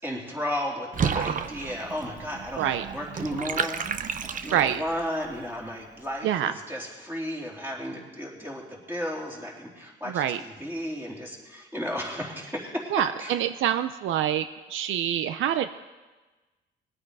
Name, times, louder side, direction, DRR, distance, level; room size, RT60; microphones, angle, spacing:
voice 1, 0.0-12.9 13.2-13.4, equal, 10° right, -3 dB, 3.6 m, -34 dB
Water / Bathtub (filling or washing), 0.9-5.0, right 6 dB, 40° right, 0.7 m, -31 dB
voice 2, 4.5-4.8 6.2-6.5 10.1-10.4 12.9-15.7, right 10 dB, 80° right, 11 dB, 0.5 m, -26 dB
20.5 x 8.8 x 4.8 m, 1.2 s
cardioid pair, 90°, 20 cm